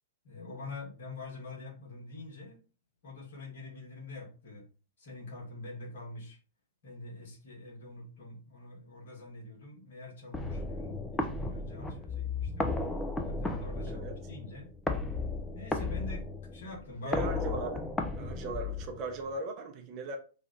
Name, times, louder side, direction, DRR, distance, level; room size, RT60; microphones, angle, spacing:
voice 1, 0.2-2.6 3.0-4.6 5.0-6.4 6.8-12.7 13.2-14.7 15.5-17.2, left 2 dB, 60° left, 1.7 m, -45 dB
sound 1, 10.3-19.3, left 3 dB, 10° left, 0.5 m, -34 dB
voice 2, 17.0-17.9 18.2-20.2, right 3 dB, 35° right, 0.7 m, -38 dB
3.2 x 2.4 x 3.8 m
figure-of-eight pair, 105°, 0 cm